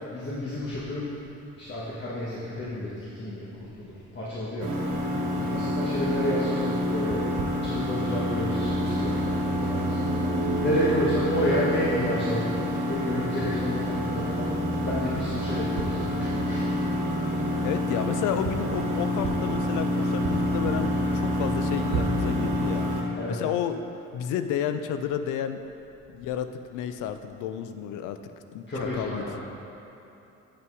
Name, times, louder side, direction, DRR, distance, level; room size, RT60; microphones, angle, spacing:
voice 1, 0.1-1.0 1.6-4.7 5.5-7.2 7.6-9.2 9.5-10.1 10.6-12.5 12.8-14.5 14.8-16.7 23.2-23.4 28.7-29.4, equal, 40° left, -8 dB, 1.5 m, -30 dB
sound 1, 4.6-23.0, equal, 75° right, 1.3 m, -27 dB
voice 2, 5.3-5.7 17.6-22.9 23.3-23.8 24.1-25.6 26.1-28.2 28.5-29.4, left 9 dB, 90° left, 9 dB, 0.5 m, -31 dB
8.0 x 5.7 x 4.8 m, 3.0 s
cardioid pair, 90°, 30 cm